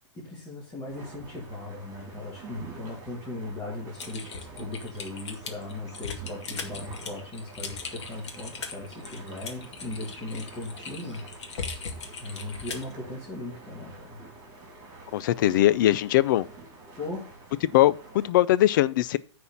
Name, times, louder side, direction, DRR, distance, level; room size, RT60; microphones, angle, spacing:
voice 1, 0.1-11.2 12.2-14.2 17.0-17.2, left 2 dB, 15° left, 2.6 m, -38 dB
sound 1, 0.9-18.3, right 3 dB, 25° right, 3.0 m, -46 dB
Typing, 4.0-12.9, left 5 dB, 65° left, 1.9 m, -39 dB
voice 2, 15.1-16.5 17.7-19.2, left 14 dB, 45° left, 0.5 m, -21 dB
9.3 x 4.3 x 7.0 m
hypercardioid pair, 150°, 15 cm